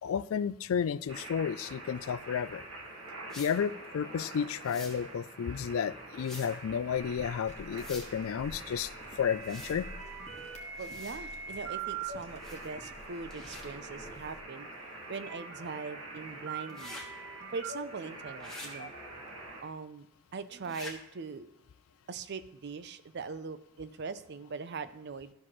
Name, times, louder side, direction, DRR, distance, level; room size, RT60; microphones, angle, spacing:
voice 1, 0.0-2.6 3.4-9.9, left 7 dB, 85° left, 17 dB, 0.3 m, -32 dB
sound 1, 1.1-19.6, right 4 dB, 85° right, 1.8 m, -44 dB
sound 2, 3.3-3.5 4.6-4.9 6.2-6.5 7.7-8.1 9.4-9.7 10.8-11.2 12.4-12.7 13.3-13.6 16.7-17.0 18.4-18.7 20.6-20.9, left 2 dB, 5° left, 1.3 m, -45 dB
sound 3, 7.0-14.4, left 1 dB, 35° left, 1.3 m, -51 dB
voice 2, 10.8-14.7 15.1-17.0 17.5-18.9 19.6-20.1 20.3-21.5 22.1-25.3, right 4 dB, 55° right, 13 dB, 0.5 m, -41 dB
13.0 x 5.9 x 3.1 m, 0.83 s
head